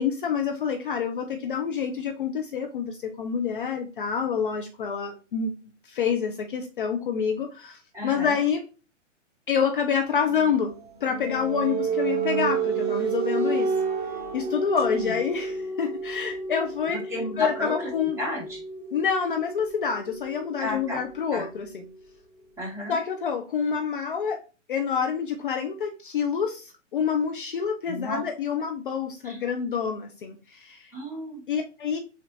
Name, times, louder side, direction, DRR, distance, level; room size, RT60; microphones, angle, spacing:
voice 1, 0.0-5.5 5.8-8.6 9.5-10.7 11.0-13.7 14.3-17.0 17.4-18.2 18.9-21.8 22.9-24.4 24.7-30.9 31.5-32.0, left 7 dB, 45° left, 4 dB, 0.5 m, -27 dB
voice 2, 7.9-8.4 14.9-15.1 17.1-17.9 18.2-18.6 20.6-21.0 21.3-21.5 22.6-23.0 27.9-28.2 29.2-29.4 30.9-31.4, left 1 dB, 5° right, -4 dB, 1.4 m, -32 dB
sound 1, 10.2-21.8, right 5 dB, 35° right, 0.7 m, -31 dB
6.6 x 2.5 x 2.6 m, 0.34 s
figure-of-eight pair, 120°, 37 cm